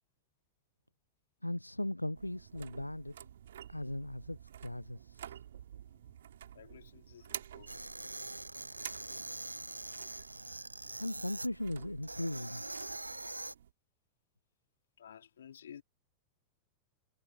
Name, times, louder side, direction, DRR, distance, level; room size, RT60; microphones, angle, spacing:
voice 1, 1.4-3.2 3.7-5.3 11.0-12.6, left 1 dB, 85° left, 0.7 m, -38 dB
sound 1, 2.1-13.7, right 10 dB, 60° right, 2.7 m, -51 dB
voice 2, 5.8-6.1 6.5-7.8 15.0-15.8, left 9 dB, 65° left, 4.0 m, -54 dB
sound 2, 7.7-11.5 12.0-13.6, right 2 dB, 85° right, 0.8 m, -43 dB
figure-of-eight pair, 90°, 0 cm